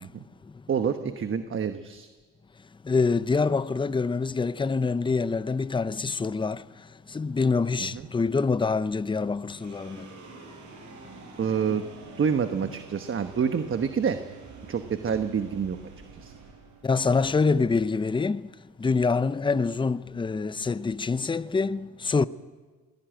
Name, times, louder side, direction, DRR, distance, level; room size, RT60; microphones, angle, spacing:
voice 1, 0.7-2.1 7.8-8.1 11.4-11.8 12.2-14.2 14.7-15.8 16.1-16.3, right 7 dB, 45° right, 1.2 m, -27 dB
voice 2, 2.9-6.6 7.1-10.0 16.8-18.4 18.8-21.8 22.1-22.3, left 4 dB, 15° left, 0.6 m, -25 dB
sound 1, 9.5-18.1, right 4 dB, 75° right, 6.3 m, -47 dB
21.5 x 16.5 x 9.1 m
cardioid pair, 90°, 30 cm